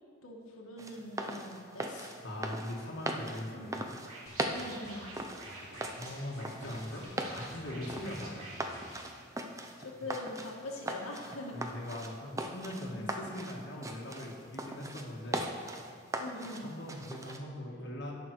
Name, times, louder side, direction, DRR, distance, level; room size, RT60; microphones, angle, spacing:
voice 1, 0.2-1.9 3.5-3.8 4.5-5.1 9.8-11.6 12.8-13.1 16.2-16.7, left 1 dB, 85° left, -1 dB, 1.6 m, -43 dB
sound 1, 0.8-17.4, right 1 dB, 15° right, 0.5 m, -40 dB
voice 2, 1.8-3.9 6.0-8.4 8.8-9.1 11.5-15.4 16.6-18.1, left 1 dB, 55° left, -3 dB, 1.5 m, -41 dB
Scratching (performance technique), 4.0-9.5, right 2 dB, 90° right, 2.4 m, -49 dB
Drum, 4.3-9.0, left 1 dB, 15° left, 1.9 m, -53 dB
16.5 x 6.0 x 4.6 m, 2.1 s
head